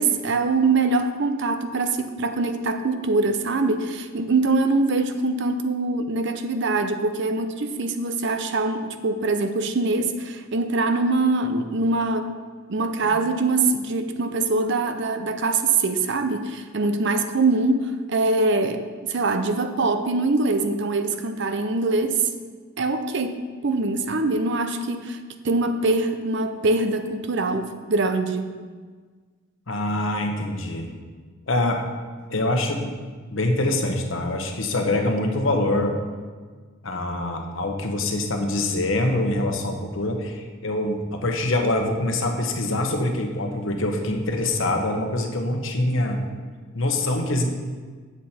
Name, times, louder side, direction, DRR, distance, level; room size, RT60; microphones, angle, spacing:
voice 1, 0.0-12.4 12.7-18.8 19.1-22.3 22.8-28.5, right 3 dB, 60° right, 8 dB, 0.6 m, -23 dB
voice 2, 29.7-31.0 31.5-31.8 32.3-32.9 33.3-35.9 36.8-46.2 46.7-47.4, left 2 dB, 70° left, 3 dB, 1.0 m, -24 dB
8.3 x 7.4 x 4.3 m, 1.5 s
head